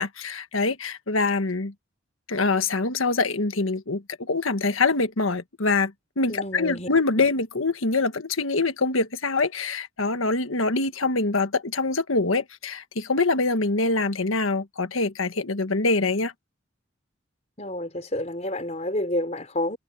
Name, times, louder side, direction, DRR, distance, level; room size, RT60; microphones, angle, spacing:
voice 1, 0.0-1.7 2.3-5.9 6.2-16.3, left 3 dB, 85° left, 1.5 m, -24 dB
voice 2, 6.3-6.9 17.6-19.8, left 1 dB, 35° left, 4.6 m, -29 dB
head